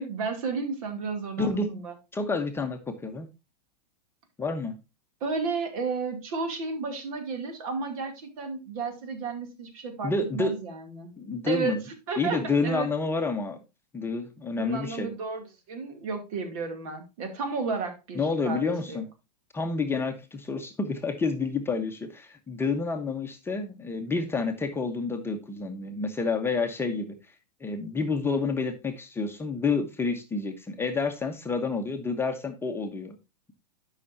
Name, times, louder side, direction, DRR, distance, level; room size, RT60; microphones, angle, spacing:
voice 1, 0.0-1.9 5.2-11.1 11.5-11.8 12.1-12.9 14.6-19.0, right 4 dB, 60° right, 5 dB, 2.5 m, -32 dB
voice 2, 1.4-1.8 2.1-3.3 4.4-4.8 10.0-10.6 11.2-11.8 12.2-13.6 13.9-15.1 18.1-19.1 19.5-27.1 27.6-33.1, left 4 dB, 10° left, 4 dB, 0.9 m, -29 dB
12.0 x 5.7 x 2.7 m, 0.26 s
hypercardioid pair, 115°, 21 cm